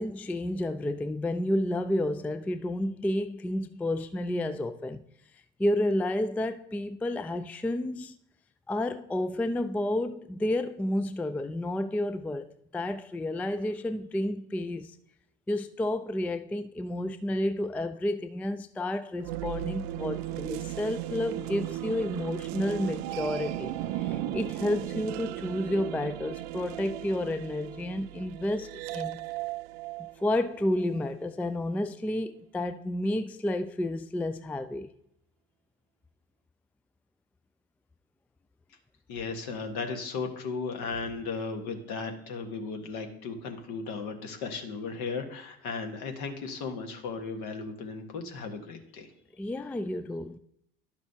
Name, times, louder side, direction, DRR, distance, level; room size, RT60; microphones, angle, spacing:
voice 1, 0.0-5.0 5.6-8.2 8.7-15.0 15.5-29.2 30.2-34.9 49.4-50.4, left 1 dB, 5° left, 0.3 m, -31 dB
sound 1, 19.2-31.0, right 14 dB, 65° right, 0.5 m, -36 dB
voice 2, 39.1-49.1, left 4 dB, 60° left, 1.6 m, -36 dB
11.5 x 6.0 x 2.8 m
hypercardioid pair, 60°, 34 cm